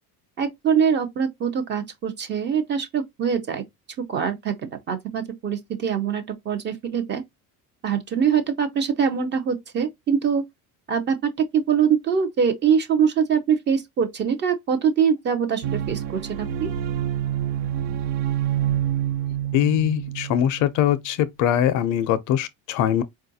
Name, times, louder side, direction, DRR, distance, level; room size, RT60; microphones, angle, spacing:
voice 1, 0.4-3.6 4.1-7.2 7.8-10.4 10.9-16.7, right 7 dB, 30° right, 0.5 m, -23 dB
sound 1, 15.6-20.9, right 11 dB, 75° right, 0.6 m, -27 dB
voice 2, 19.5-23.0, left 10 dB, 50° left, 0.4 m, -22 dB
4.5 x 2.3 x 2.6 m
cardioid pair, 175°, 39 cm